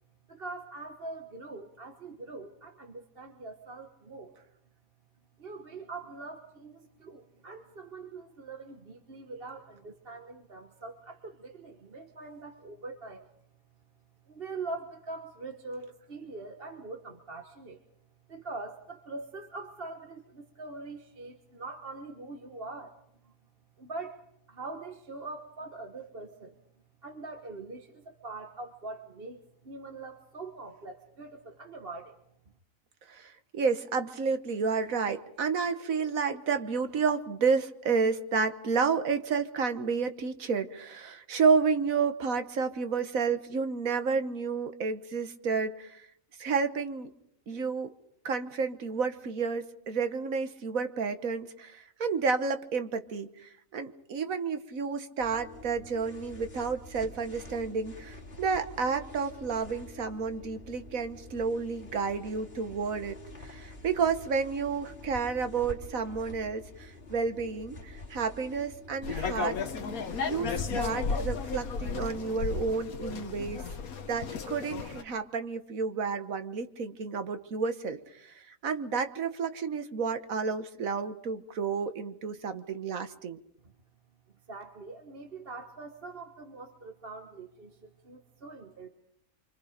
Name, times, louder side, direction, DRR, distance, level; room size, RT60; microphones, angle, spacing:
voice 1, 0.3-4.3 5.4-13.3 14.3-17.8 18.3-23.0 23.2-23.3 23.8-24.2 24.5-26.6 27.0-32.1 84.5-88.9, right 3 dB, 45° right, 5 dB, 1.5 m, -43 dB
voice 2, 33.1-46.0 46.4-47.1 47.5-47.9 48.2-53.3 53.7-63.1 63.4-69.6 70.2-73.6 74.1-83.4, right 5 dB, 75° right, 9 dB, 1.7 m, -31 dB
sound 1, 55.2-71.8, left 2 dB, 45° left, 2.7 m, -47 dB
sound 2, 69.0-75.0, left 5 dB, 90° left, 1.7 m, -34 dB
26.5 x 25.0 x 5.1 m, 0.74 s
omnidirectional pair, 1.5 m